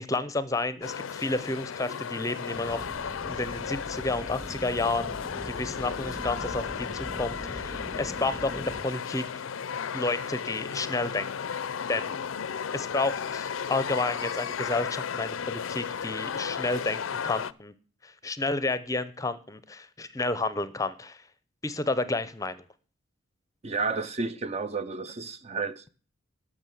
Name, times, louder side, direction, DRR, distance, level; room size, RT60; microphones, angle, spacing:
voice 1, 0.0-5.1 5.4-9.2 9.9-11.5 11.9-12.2 12.7-17.7 18.0-21.2 21.6-22.6, left 2 dB, 15° left, 0.6 m, -31 dB
sound 1, 0.8-17.5, left 7 dB, 75° left, 0.5 m, -34 dB
sound 2, 2.5-8.8, equal, 15° right, 2.4 m, -41 dB
voice 2, 23.6-25.9, right 4 dB, 30° right, 0.5 m, -31 dB
12.5 x 6.3 x 7.7 m
head